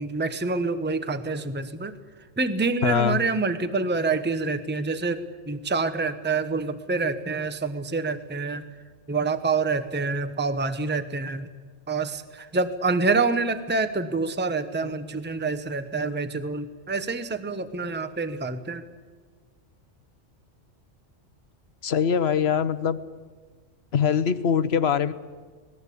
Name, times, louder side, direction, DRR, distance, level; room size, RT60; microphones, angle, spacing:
voice 1, 0.0-1.9 2.4-8.6 9.1-11.5 11.9-18.8, right 4 dB, 10° right, 11 dB, 0.9 m, -27 dB
voice 2, 2.8-3.2 21.8-23.0 23.9-25.1, left 7 dB, 60° left, 13 dB, 1.2 m, -22 dB
26.5 x 19.0 x 8.5 m, 1.5 s
omnidirectional pair, 1.2 m